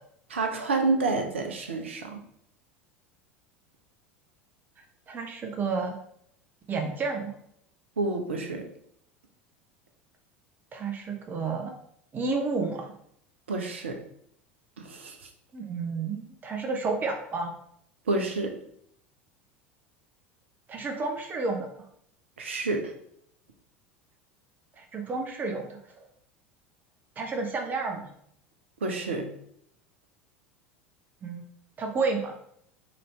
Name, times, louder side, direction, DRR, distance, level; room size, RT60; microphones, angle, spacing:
voice 1, 0.3-2.2 8.0-8.7 13.5-14.0 14.8-15.2 18.1-18.6 22.4-22.9 28.8-29.3, right 3 dB, 75° right, 4 dB, 0.6 m, -29 dB
voice 2, 5.1-5.9 6.7-7.3 10.7-11.7 12.1-12.9 15.5-17.5 20.7-21.7 24.8-26.1 27.2-28.1 31.2-31.4 31.8-32.3, right 4 dB, 30° right, 3 dB, 0.6 m, -31 dB
3.0 x 2.6 x 3.2 m, 0.68 s
figure-of-eight pair, 75°, 7 cm